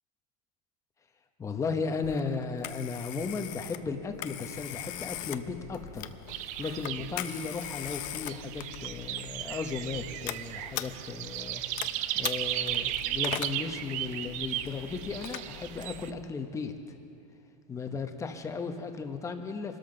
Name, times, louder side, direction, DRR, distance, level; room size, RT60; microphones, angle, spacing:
voice 1, 1.4-6.1 6.6-11.6 12.1-16.7 17.7-19.8, left 4 dB, 15° left, 6 dB, 1.0 m, -35 dB
Telephone, 2.0-16.3, left 13 dB, 45° left, 0.6 m, -41 dB
sound 1, 6.3-16.1, right 12 dB, 40° right, 0.5 m, -35 dB
24.5 x 13.0 x 3.9 m, 2.7 s
supercardioid pair, 140°, 19 cm